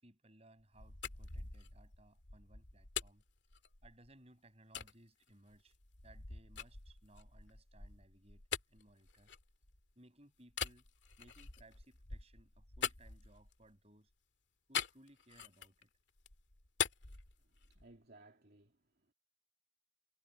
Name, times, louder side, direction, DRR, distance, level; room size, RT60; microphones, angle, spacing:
voice 1, 0.0-3.2 3.8-5.7 6.0-8.4 8.7-9.3 9.9-10.9 11.2-14.1 14.7-15.9, right 1 dB, 30° right, 6.8 m, -63 dB
sound 1, 0.6-4.1 4.7-4.9 5.5-9.9 10.5-13.7 14.7-15.8 16.2-18.0, left 7 dB, 65° left, 2.4 m, -44 dB
voice 2, 17.4-19.1, right 2 dB, 55° right, 2.5 m, -62 dB
head